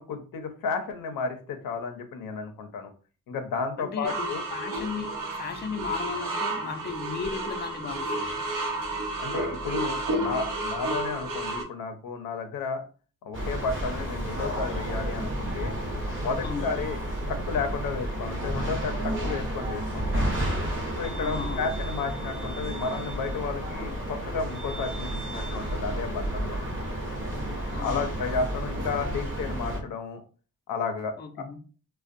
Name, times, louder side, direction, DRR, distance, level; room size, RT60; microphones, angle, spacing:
voice 1, 0.0-2.9 3.3-4.4 9.2-12.8 13.2-15.7 16.2-17.0 17.3-20.3 21.0-26.6 27.8-30.2 30.7-31.2, left 5 dB, 80° left, 0.6 m, -32 dB
voice 2, 3.8-8.3 16.4-16.7 21.2-21.6 27.7-28.1 31.2-31.6, left 5 dB, 30° left, 0.5 m, -35 dB
sound 1, 4.0-11.6, right 2 dB, 70° right, 0.7 m, -31 dB
sound 2, 13.3-29.8, right 1 dB, 35° right, 0.8 m, -31 dB
2.5 x 2.1 x 2.5 m
cardioid pair, 65°, 34 cm